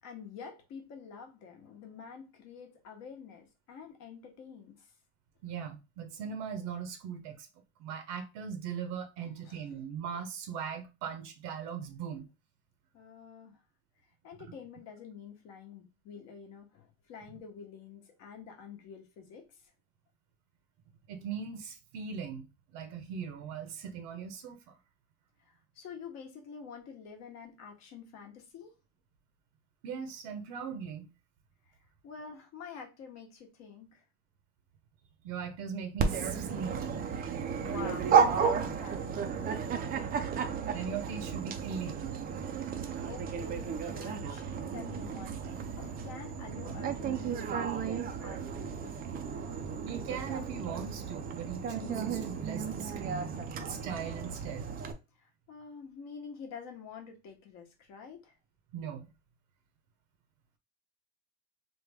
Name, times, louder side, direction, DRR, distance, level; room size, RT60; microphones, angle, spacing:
voice 1, 0.0-4.9 9.4-9.7 12.9-13.6 14.0-19.7 25.4-28.7 31.7-34.0 37.5-40.1 42.8-49.4 53.3-53.5 55.2-58.4, left 6 dB, 45° left, 1.0 m, -48 dB
voice 2, 5.4-7.5 7.8-12.2 21.1-22.5 22.7-24.7 29.8-31.1 35.2-37.0 40.7-42.2 43.0-43.1 49.8-54.7 58.7-59.1, right 7 dB, 60° right, 0.8 m, -39 dB
Dog, 36.0-54.9, right 6 dB, 25° right, 0.4 m, -33 dB
3.4 x 2.2 x 3.4 m
supercardioid pair, 130°, 36 cm